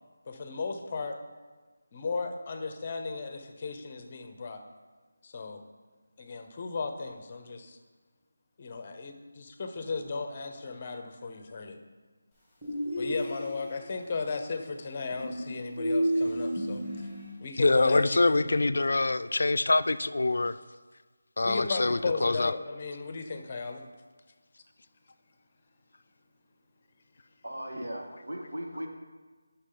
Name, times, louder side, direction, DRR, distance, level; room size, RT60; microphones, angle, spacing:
voice 1, 0.3-1.2 1.9-4.6 5.2-5.6 6.2-7.8 8.6-11.8 13.0-16.8 17.4-18.4 21.4-23.8, left 4 dB, 25° left, 6 dB, 0.7 m, -35 dB
sound 1, 12.6-13.9 15.1-17.3, equal, 5° right, 2.4 m, -31 dB
voice 2, 17.6-20.6 21.4-22.5, left 2 dB, 65° left, 12 dB, 0.4 m, -25 dB
voice 3, 27.4-28.9, equal, 80° right, 1 dB, 1.6 m, -37 dB
9.7 x 6.0 x 3.8 m, 1.4 s
figure-of-eight pair, 170°, 0 cm